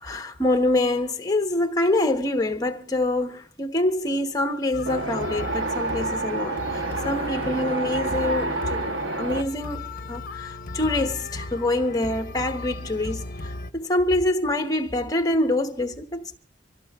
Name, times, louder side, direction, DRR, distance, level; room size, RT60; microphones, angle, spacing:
voice 1, 0.0-8.9 9.2-16.4, left 1 dB, 20° left, 1.0 m, -25 dB
sound 1, 4.7-13.7, left 2 dB, 50° left, 0.8 m, -36 dB
Wind, 4.9-9.4, right 2 dB, 75° right, 1.1 m, -28 dB
25.0 x 16.0 x 2.4 m
head